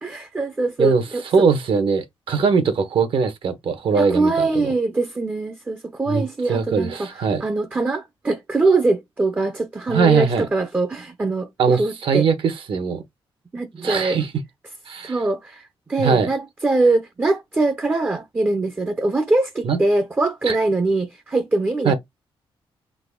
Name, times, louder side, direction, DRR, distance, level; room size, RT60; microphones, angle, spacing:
voice 1, 0.0-1.5 4.0-7.1 7.4-12.3 13.5-14.2 15.0-21.9, right 2 dB, 20° right, 0.5 m, -22 dB
voice 2, 1.3-4.7 6.1-7.4 9.9-10.5 11.6-13.0 13.8-14.3 14.9-15.2 16.0-16.3 19.6-19.8 20.4-20.6 21.8-21.9, right 5 dB, 65° right, 1.1 m, -21 dB
4.0 x 3.0 x 3.6 m
wide cardioid pair, 145°, 10 cm